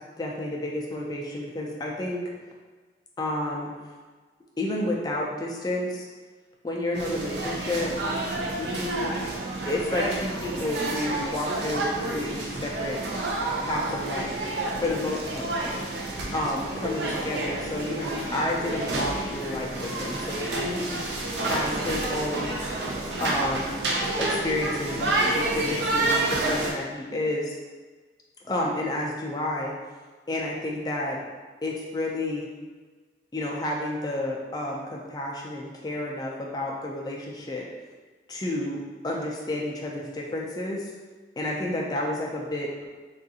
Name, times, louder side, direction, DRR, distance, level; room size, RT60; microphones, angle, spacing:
voice 1, 0.2-2.2 3.2-3.7 4.6-6.1 6.6-7.9 8.6-9.1 9.7-13.0 13.6-14.4 14.8-15.5 16.3-21.0 21.4-22.5 23.2-23.7 24.2-27.6 28.5-29.7 30.3-31.2 31.6-32.5 33.3-37.7 38.3-38.8 39.0-40.9 41.4-42.9, left 1 dB, 20° left, -2 dB, 0.3 m, -30 dB
sound 1, 6.9-26.7, right 2 dB, 75° right, 0.5 m, -29 dB
3.6 x 2.4 x 2.7 m, 1.4 s
head